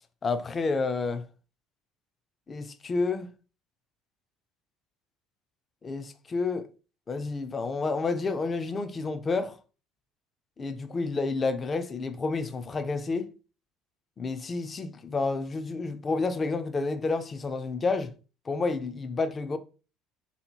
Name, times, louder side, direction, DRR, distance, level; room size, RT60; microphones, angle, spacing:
voice 1, 0.2-1.2 2.5-3.3 5.8-6.7 7.1-9.6 10.6-13.3 14.2-18.1 18.5-19.6, left 3 dB, 20° left, 0.4 m, -30 dB
3.2 x 2.8 x 4.4 m
cardioid pair, 145°, 0 cm